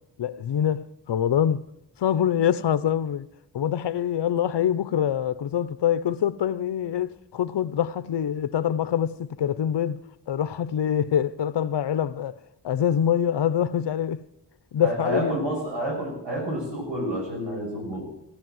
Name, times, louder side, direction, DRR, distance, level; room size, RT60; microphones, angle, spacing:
voice 1, 0.2-1.6 2.0-3.3 3.5-10.0 10.3-12.4 12.6-14.2 14.7-15.4, left 9 dB, 70° left, 0.7 m, -25 dB
voice 2, 14.8-18.0, right 1 dB, 85° right, 6.4 m, -29 dB
16.0 x 11.5 x 7.7 m
wide cardioid pair, 100°, 43 cm